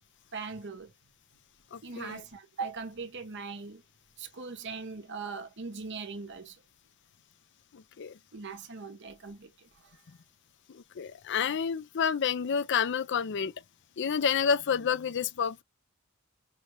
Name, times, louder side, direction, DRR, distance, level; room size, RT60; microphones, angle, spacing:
voice 1, 0.3-0.9 1.8-3.8 4.2-6.6 8.3-10.0, right 4 dB, 55° right, 1.0 m, -40 dB
voice 2, 1.7-2.2 7.7-8.1 10.7-13.5 14.0-15.6, left 7 dB, 55° left, 0.5 m, -29 dB
5.6 x 2.4 x 3.1 m
head